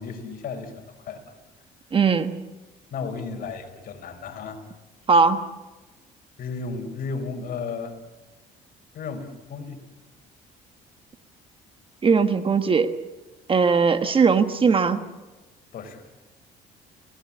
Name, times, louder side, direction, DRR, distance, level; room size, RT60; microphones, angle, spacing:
voice 1, 0.0-1.4 2.9-4.6 6.4-8.0 8.9-9.8 15.7-16.1, left 4 dB, 60° left, 5 dB, 4.6 m, -34 dB
voice 2, 1.9-2.4 5.1-5.4 12.0-12.9 13.5-15.0, right 5 dB, 30° right, 9 dB, 1.5 m, -19 dB
29.0 x 18.0 x 8.6 m, 1.2 s
cardioid pair, 110°, 17 cm